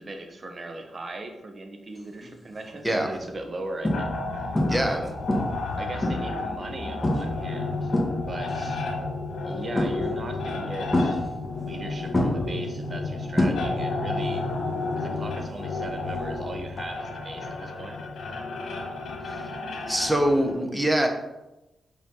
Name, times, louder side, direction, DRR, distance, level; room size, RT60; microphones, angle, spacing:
voice 1, 0.0-5.1 5.8-7.9 8.3-8.8 9.4-11.2 11.6-14.5 14.9-18.2, right 2 dB, 40° right, 5 dB, 1.3 m, -39 dB
sound 1, 2.2-2.5 3.1-3.2 3.8-4.3 4.5-5.0 5.3-6.4 7.0-7.4 7.7-8.6 9.7-10.3 10.9-11.8 12.1-14.0 14.3-14.7 16.8-16.9, left 1 dB, 10° left, 1.9 m, -26 dB
sound 2, 3.9-20.5, left 3 dB, 80° left, 1.7 m, -32 dB
voice 2, 4.7-5.0 19.2-19.4 19.9-21.1, right 1 dB, 5° right, 4 dB, 1.3 m, -24 dB
5.5 x 5.5 x 5.6 m, 0.98 s
cardioid pair, 80°, 0 cm